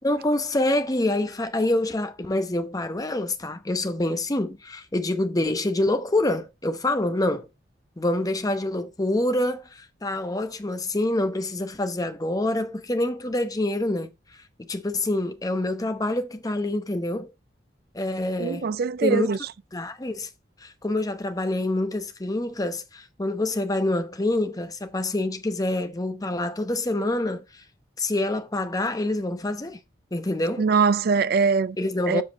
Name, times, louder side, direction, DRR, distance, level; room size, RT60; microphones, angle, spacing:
voice 1, 0.0-7.5 8.0-14.1 14.6-17.3 17.9-18.7 19.0-19.3 19.7-20.3 20.6-27.6 28.0-29.8 30.1-30.6 31.8-32.2, left 1 dB, 20° left, 0.8 m, -26 dB
voice 2, 18.4-19.4 30.6-31.8 32.1-32.2, right 5 dB, 55° right, 0.4 m, -22 dB
7.4 x 4.9 x 4.5 m
head